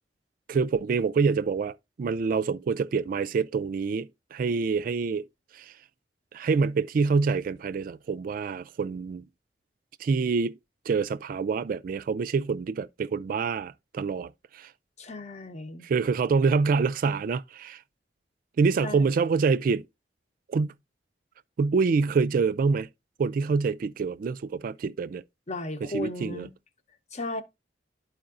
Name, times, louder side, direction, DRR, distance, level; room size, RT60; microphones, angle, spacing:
voice 1, 0.5-5.3 5.5-5.7 6.3-9.2 10.0-10.5 10.9-14.7 15.8-17.8 18.6-19.9 20.5-20.7 21.6-22.9 23.2-25.2 25.8-26.5, right 5 dB, 50° right, 0.3 m, -26 dB
voice 2, 15.0-15.9 18.8-19.2 25.5-26.5 27.1-27.4, left 2 dB, 40° left, 0.9 m, -35 dB
11.5 x 4.7 x 2.4 m
head